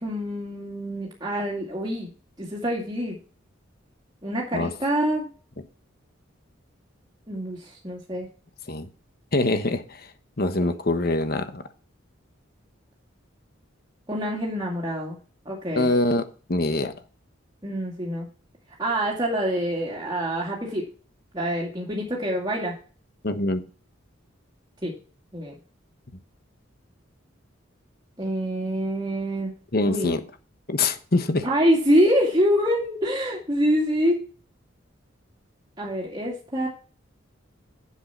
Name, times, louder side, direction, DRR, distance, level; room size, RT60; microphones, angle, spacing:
voice 1, 0.0-2.1 2.4-3.2 4.2-5.3 7.3-8.3 10.6-10.7 14.1-15.2 15.5-15.9 17.6-18.3 18.8-20.8 21.3-22.7 24.8-24.9 25.3-25.5 28.2-29.5 29.8-30.1 31.4-34.2 35.8-36.7, equal, 20° right, -3 dB, 2.3 m, -25 dB
voice 2, 9.3-10.1 10.4-11.6 15.7-16.2 16.5-16.9 23.2-23.6 29.7-30.2 30.7-31.5, left 2 dB, 50° left, 9 dB, 1.2 m, -24 dB
7.6 x 7.4 x 5.7 m, 0.39 s
head